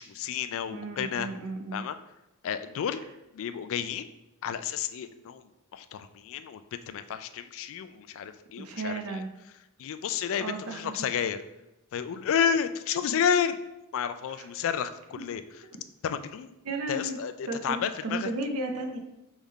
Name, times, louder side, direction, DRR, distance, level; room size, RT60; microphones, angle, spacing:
voice 1, 0.0-1.3 1.7-2.0 2.4-3.0 3.3-4.1 4.4-9.2 9.8-11.4 11.9-13.6 13.9-15.4 16.0-16.5 16.9-18.3, left 8 dB, 65° left, 11 dB, 0.3 m, -31 dB
voice 2, 0.7-1.8 8.6-9.3 10.4-11.1 14.3-14.5 16.6-17.2 17.5-19.0, right 2 dB, 85° right, 5 dB, 0.7 m, -34 dB
3.6 x 3.5 x 4.0 m, 0.93 s
head